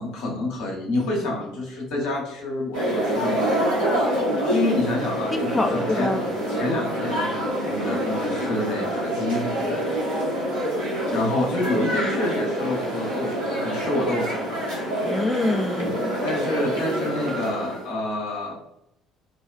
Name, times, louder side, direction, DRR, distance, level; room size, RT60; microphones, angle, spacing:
voice 1, 0.0-3.5 4.5-6.1 6.5-7.3 7.6-9.8 11.1-14.6 16.2-18.6, left 2 dB, 65° left, -2 dB, 0.8 m, -28 dB
sound 1, 2.7-17.9, right 1 dB, 85° right, 1.0 m, -26 dB
voice 2, 5.3-6.2 11.2-11.3 15.0-16.1, left 2 dB, 20° left, 6 dB, 0.4 m, -25 dB
2.5 x 2.3 x 2.2 m, 0.79 s
figure-of-eight pair, 55°, 0 cm